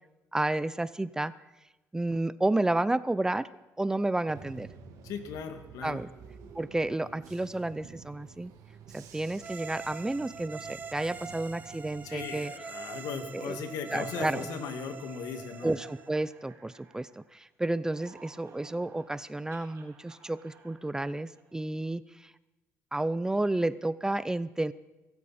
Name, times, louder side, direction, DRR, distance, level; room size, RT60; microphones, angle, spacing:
voice 1, 0.3-1.3 1.9-3.5 3.8-4.7 5.8-6.1 6.5-8.5 8.9-12.5 13.3-13.6 13.9-14.5 15.6-22.3 22.9-24.7, right 2 dB, 10° right, 16 dB, 0.6 m, -31 dB
Bus / Engine, 4.3-12.3, right 6 dB, 80° right, 2.3 m, -50 dB
voice 2, 5.0-6.0 12.0-15.7, left 6 dB, 85° left, 6 dB, 2.2 m, -38 dB
sound 1, 9.4-16.1, right 5 dB, 30° right, 1.1 m, -44 dB
sound 2, 13.9-17.4 17.7-21.7, right 6 dB, 60° right, 4.4 m, -57 dB
24.5 x 13.5 x 4.3 m, 1.1 s
cardioid pair, 115°, 6 cm